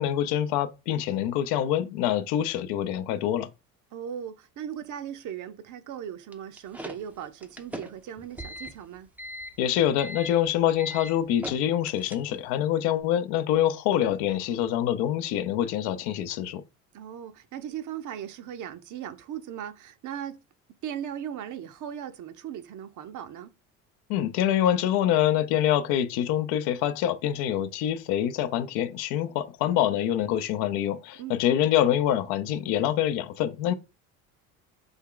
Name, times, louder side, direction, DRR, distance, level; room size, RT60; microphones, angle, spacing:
voice 1, 0.0-3.5 9.6-16.6 24.1-33.7, left 11 dB, 70° left, 0.6 m, -25 dB
voice 2, 3.9-9.1 14.0-14.4 16.9-20.4 20.8-23.5 31.2-31.4, right 9 dB, 50° right, 0.6 m, -38 dB
sound 1, 6.3-12.6, equal, 5° right, 0.4 m, -41 dB
3.5 x 2.3 x 3.7 m
hypercardioid pair, 70°, 41 cm